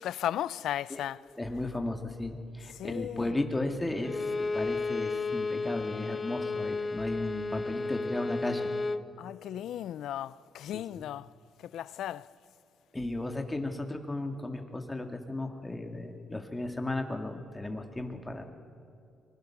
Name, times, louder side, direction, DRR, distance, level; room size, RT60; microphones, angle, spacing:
voice 1, 0.0-1.2 2.7-3.3 9.2-11.3 11.6-12.3, left 11 dB, 75° left, 0.4 m, -36 dB
voice 2, 1.4-8.7 10.7-11.1 12.9-18.4, left 2 dB, 15° left, 2.2 m, -35 dB
Bowed string instrument, 4.0-9.1, left 3 dB, 30° left, 0.7 m, -33 dB
24.0 x 21.0 x 5.9 m
cardioid pair, 90°, 0 cm